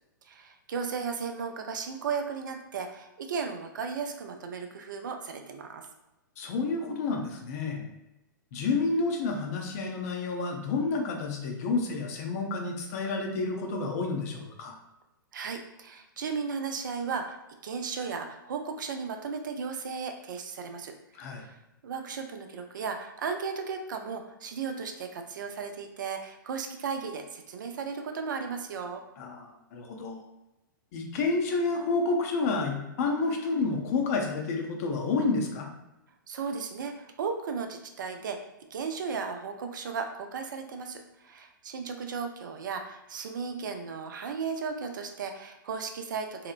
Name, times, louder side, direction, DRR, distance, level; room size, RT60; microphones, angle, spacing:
voice 1, 0.3-5.9 15.3-17.4 17.6-20.9 21.3-21.6 21.8-29.0 36.3-46.5, right 5 dB, 65° right, 5 dB, 0.4 m, -35 dB
voice 2, 6.4-7.9 8.5-14.8 21.1-21.5 29.2-30.2 30.9-35.7, left 3 dB, 45° left, 2 dB, 0.5 m, -30 dB
2.8 x 2.0 x 2.4 m, 0.95 s
figure-of-eight pair, 115°, 11 cm